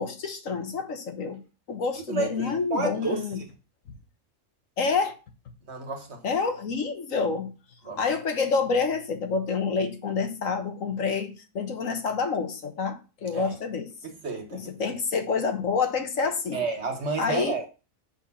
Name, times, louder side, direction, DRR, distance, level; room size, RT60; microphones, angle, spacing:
voice 1, 0.0-1.4 1.7-3.4 4.8-5.1 6.2-7.5 8.0-13.9 14.5-16.6 17.2-17.6, left 5 dB, 65° left, 1.6 m, -28 dB
voice 2, 1.9-3.2 5.6-6.2 7.8-8.0 13.3-13.6 14.0-14.7 16.5-17.6, right 4 dB, 50° right, 1.7 m, -31 dB
7.3 x 4.5 x 5.6 m
omnidirectional pair, 1.5 m